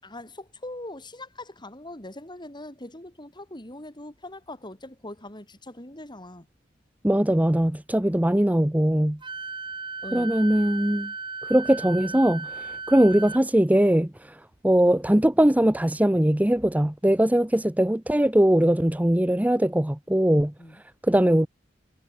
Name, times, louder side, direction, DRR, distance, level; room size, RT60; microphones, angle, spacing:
voice 1, 0.0-6.5 10.0-10.3 20.6-20.8, left 1 dB, 25° left, 6.8 m, -41 dB
voice 2, 7.0-9.2 10.1-11.1 11.4-21.5, right 1 dB, 10° right, 0.8 m, -21 dB
Wind instrument woodwind instrument, 9.2-13.4, right 4 dB, 25° right, 4.2 m, -36 dB
head